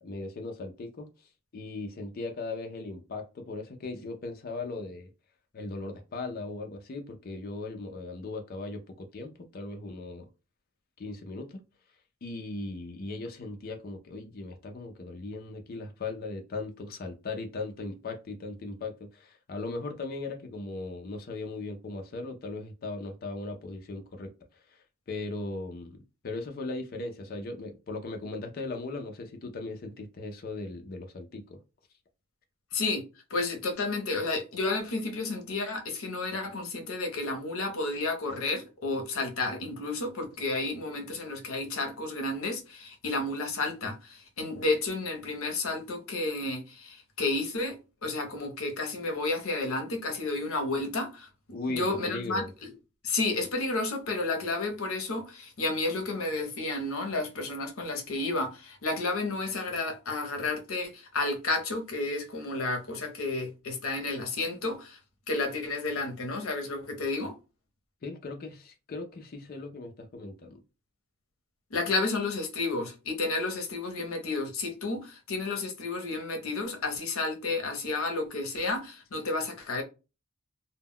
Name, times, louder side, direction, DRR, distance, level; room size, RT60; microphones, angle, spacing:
voice 1, 0.0-5.1 5.5-10.3 11.0-11.6 12.2-26.0 26.2-31.6 51.5-52.5 68.0-70.6, left 3 dB, 45° left, 0.4 m, -38 dB
voice 2, 32.7-33.0 33.3-51.3 51.7-52.4 53.0-65.0 65.3-67.3 71.7-79.8, left 3 dB, 80° left, 0.7 m, -31 dB
2.1 x 2.1 x 3.5 m
head